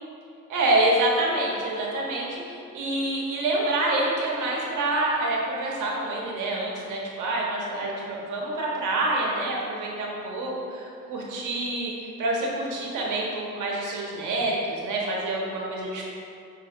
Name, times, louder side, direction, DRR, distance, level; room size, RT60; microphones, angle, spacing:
voice 1, 0.5-11.9 12.2-16.0, right 2 dB, 85° right, -3 dB, 1.6 m, -27 dB
7.5 x 3.9 x 5.0 m, 2.5 s
cardioid pair, 90°, 30 cm